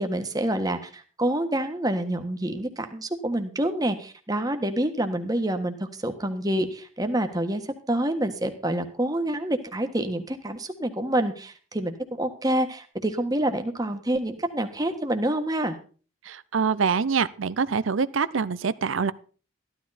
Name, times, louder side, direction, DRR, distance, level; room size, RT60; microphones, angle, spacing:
voice 1, 0.0-15.8, right 1 dB, 20° right, 7 dB, 1.4 m, -27 dB
voice 2, 16.2-19.1, right 5 dB, 75° right, 15 dB, 0.6 m, -25 dB
14.5 x 12.0 x 4.2 m, 0.39 s
head